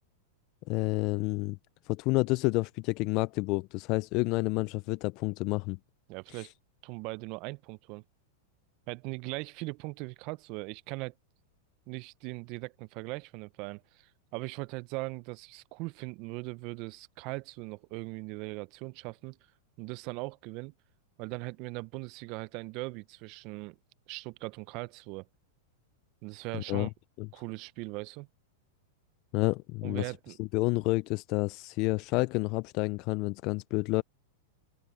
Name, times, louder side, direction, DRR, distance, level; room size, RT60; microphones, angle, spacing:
voice 1, 0.7-1.6 1.9-5.8 6.3-6.5 26.5-26.9 27.2-27.3 29.3-30.1 30.4-34.0, left 24 dB, 50° left, 0.4 m, -29 dB
voice 2, 6.1-6.5 6.8-8.0 8.9-11.1 11.9-19.4 19.8-20.7 21.2-23.8 24.1-25.3 26.2-26.9 27.3-28.3 29.8-30.4, right 25 dB, 50° right, 0.7 m, -40 dB
hypercardioid pair, 115°, 0 cm